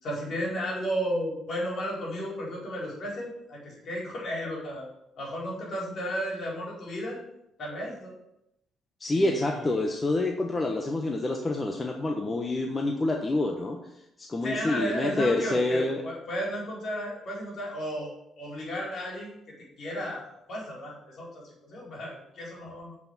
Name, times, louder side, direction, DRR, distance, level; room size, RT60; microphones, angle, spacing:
voice 1, 0.0-4.9 5.2-7.2 7.6-8.1 9.1-9.6 14.4-19.3 19.8-23.0, equal, 60° left, -2 dB, 4.5 m, -34 dB
voice 2, 9.0-13.8 14.2-16.0, left 2 dB, 25° left, 2 dB, 1.2 m, -27 dB
8.6 x 6.1 x 7.2 m, 0.82 s
cardioid pair, 90°, 0 cm